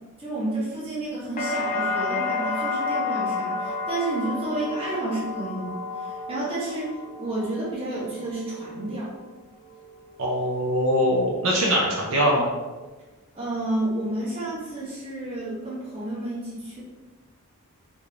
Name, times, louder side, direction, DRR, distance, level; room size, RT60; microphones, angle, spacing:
voice 1, 0.2-9.1 13.3-16.8, right 1 dB, 25° right, -7 dB, 1.1 m, -30 dB
sound 1, 1.4-9.3 9.6-10.3, left 3 dB, 35° left, 0.5 m, -31 dB
voice 2, 10.2-12.5, equal, 65° right, -3 dB, 0.5 m, -22 dB
3.4 x 2.6 x 3.3 m, 1.2 s
head